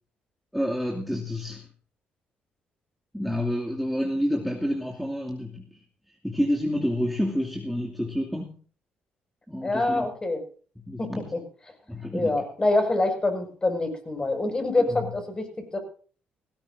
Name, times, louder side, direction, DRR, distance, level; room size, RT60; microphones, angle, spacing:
voice 1, 0.5-1.7 3.1-5.8 6.2-8.6 9.5-10.1 10.8-11.3 11.9-12.4 14.8-15.1, equal, ahead, -1 dB, 2.6 m, -29 dB
voice 2, 9.6-10.4 11.0-11.4 12.1-15.8, left 2 dB, 25° left, 6 dB, 5.9 m, -26 dB
18.5 x 16.5 x 2.7 m, 0.41 s
cardioid pair, 95°, 4 cm